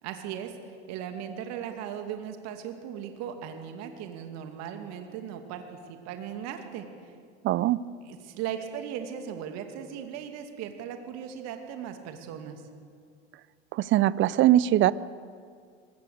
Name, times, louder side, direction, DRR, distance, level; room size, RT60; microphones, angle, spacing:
voice 1, 0.0-7.1 8.0-12.6, right 9 dB, 50° right, 6 dB, 2.6 m, -38 dB
voice 2, 7.4-7.8 13.7-14.9, right 14 dB, 35° right, 19 dB, 0.6 m, -21 dB
23.5 x 20.0 x 6.8 m, 2.2 s
figure-of-eight pair, 75°, 33 cm